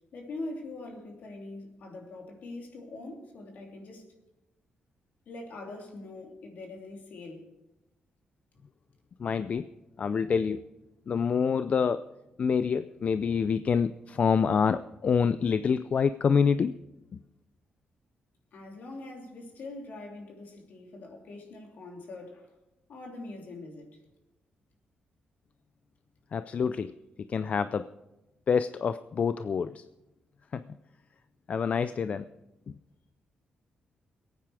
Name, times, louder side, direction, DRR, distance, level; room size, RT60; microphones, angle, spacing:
voice 1, 0.1-4.0 5.3-7.5 18.5-22.5 22.9-23.9, left 2 dB, 70° left, 3.1 m, -43 dB
voice 2, 9.2-9.7 10.0-10.6 11.1-12.1 12.4-16.7 26.3-26.9 27.2-27.9 28.5-29.8 30.5-30.6 31.5-32.3, left 6 dB, 50° left, 0.4 m, -26 dB
22.0 x 9.2 x 4.9 m
cardioid pair, 100°, 3 cm